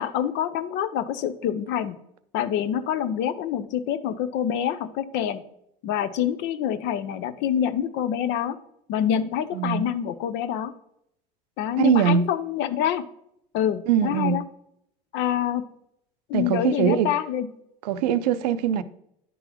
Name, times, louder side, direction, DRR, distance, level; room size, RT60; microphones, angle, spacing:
voice 1, 0.0-1.9 2.3-5.4 5.8-8.6 8.9-10.7 11.6-13.0 13.5-14.4 15.1-15.6 16.3-17.5, left 9 dB, 65° left, 0.6 m, -26 dB
voice 2, 9.5-9.9 11.8-12.2 13.9-14.4 16.3-17.1 17.8-18.8, right 8 dB, 85° right, 0.5 m, -22 dB
9.9 x 3.8 x 3.0 m
hypercardioid pair, 80°, 20 cm